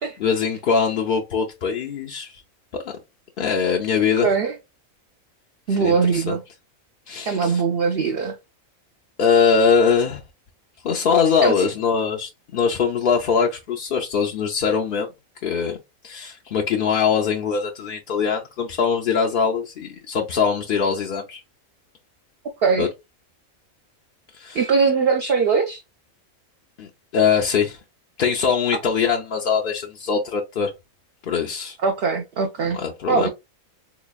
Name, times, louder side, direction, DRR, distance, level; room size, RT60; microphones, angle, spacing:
voice 1, 0.2-2.4 2.8-2.9 3.4-4.3 5.8-6.4 7.1-7.6 9.2-10.2 10.8-15.1 15.4-15.8 16.0-21.4 22.8-22.9 24.3-24.6 26.8-27.8 28.2-30.7 31.2-31.8 32.7-33.3, left 6 dB, 60° left, 0.6 m, -22 dB
voice 2, 4.2-4.6 5.7-6.4 7.3-8.4 11.4-11.7 22.6-22.9 24.5-25.8 31.8-32.8 33.1-33.3, right 5 dB, 60° right, 0.6 m, -21 dB
4.0 x 3.0 x 2.3 m
omnidirectional pair, 1.4 m